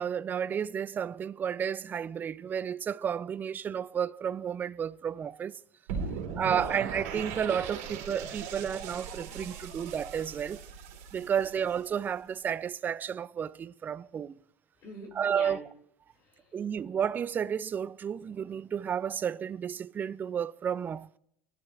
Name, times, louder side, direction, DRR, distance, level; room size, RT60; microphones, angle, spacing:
voice 1, 0.0-5.6 6.4-10.6 11.1-14.4 15.2-15.6 16.5-21.2, right 8 dB, 25° right, 0.4 m, -32 dB
sound 1, 5.9-11.9, right 6 dB, 80° right, 2.8 m, -38 dB
voice 2, 6.0-6.8 14.8-15.6 16.2-16.6, left 1 dB, 55° left, 2.4 m, -47 dB
20.0 x 12.0 x 2.4 m
supercardioid pair, 105°, 7 cm